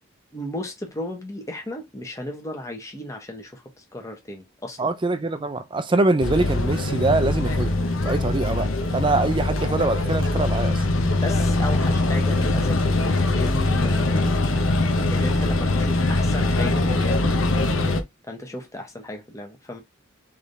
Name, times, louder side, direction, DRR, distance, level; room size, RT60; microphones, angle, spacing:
voice 1, 0.3-4.9 11.2-12.9 13.3-14.4 15.1-17.3 18.3-19.8, left 1 dB, 15° left, 1.2 m, -35 dB
voice 2, 4.8-7.7 8.0-10.9, right 2 dB, 25° right, 0.5 m, -23 dB
sound 1, 6.2-18.0, left 2 dB, 85° left, 0.8 m, -22 dB
3.6 x 3.4 x 4.0 m
head